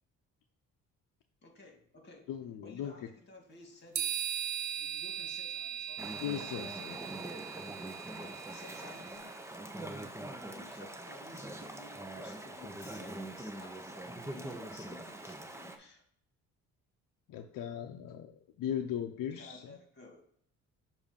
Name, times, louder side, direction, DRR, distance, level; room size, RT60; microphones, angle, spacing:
voice 1, 1.4-2.3 2.6-4.3 4.8-6.0 8.1-9.3 10.5-16.0 19.3-20.2, left 2 dB, 30° left, 2 dB, 2.4 m, -55 dB
voice 2, 2.3-2.9 6.2-7.0 17.3-19.8, left 9 dB, 75° left, 5 dB, 0.7 m, -38 dB
sound 1, 3.9-9.2, right 10 dB, 60° right, 1.0 m, -39 dB
Chatter / Stream, 6.0-15.8, right 1 dB, 10° right, 0.8 m, -43 dB
7.1 x 2.7 x 5.2 m, 0.65 s
cardioid pair, 85°, 33 cm